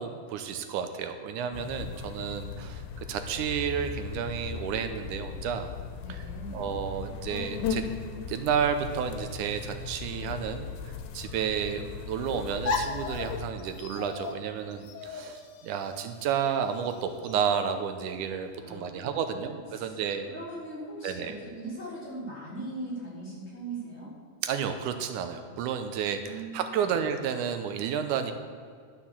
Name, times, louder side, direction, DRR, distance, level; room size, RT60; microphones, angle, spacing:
voice 1, 0.0-5.7 6.1-6.2 6.5-7.8 8.3-20.3 21.0-21.3 24.4-28.3, right 7 dB, 85° right, 8 dB, 2.2 m, -31 dB
sound 1, 1.5-13.5, left 6 dB, 85° left, 2.4 m, -38 dB
voice 2, 6.0-6.7 18.6-20.0 20.2-24.1 26.0-27.0, right 2 dB, 20° left, -7 dB, 3.8 m, -40 dB
sound 2, 12.3-17.3, left 4 dB, 70° left, 1.3 m, -36 dB
11.5 x 7.0 x 7.2 m, 2.1 s
omnidirectional pair, 3.6 m